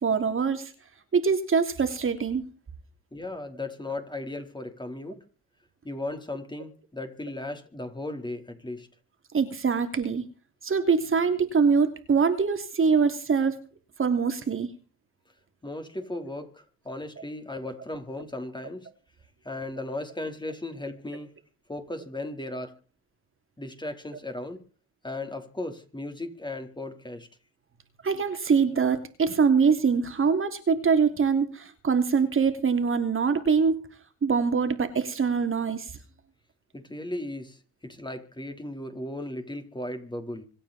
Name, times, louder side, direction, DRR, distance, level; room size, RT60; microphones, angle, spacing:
voice 1, 0.0-0.7 1.1-2.4 9.3-10.2 10.6-13.6 14.0-14.7 28.0-33.8 34.2-35.9, right 5 dB, 35° right, 7 dB, 3.2 m, -24 dB
voice 2, 3.1-5.2 5.8-8.9 15.6-18.9 19.4-21.3 21.7-22.8 23.6-24.6 25.0-27.3 36.7-37.6 37.8-40.4, left 2 dB, 15° left, 6 dB, 4.2 m, -36 dB
26.0 x 9.1 x 4.4 m, 0.38 s
supercardioid pair, 75°, 34 cm